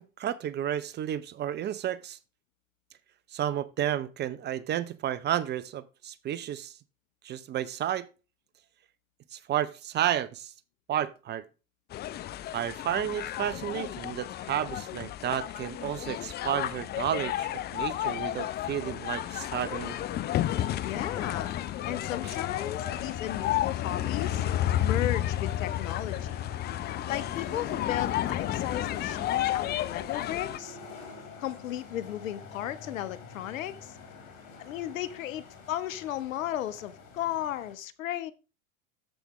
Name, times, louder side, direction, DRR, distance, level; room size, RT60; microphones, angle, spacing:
voice 1, 0.0-2.2 3.3-6.7 7.2-8.1 9.3-10.5 10.9-11.5 12.5-20.0, right 10 dB, 25° right, 0.6 m, -32 dB
sound 1, 11.9-30.6, left 13 dB, 25° left, 0.5 m, -32 dB
sound 2, 19.5-37.7, left 5 dB, 50° left, 4.8 m, -46 dB
voice 2, 20.8-21.5 21.9-24.4 24.8-26.5 27.1-30.8 31.4-33.9 34.6-38.3, left 12 dB, 70° left, 1.1 m, -35 dB
14.0 x 5.0 x 3.1 m
hypercardioid pair, 95°, 41 cm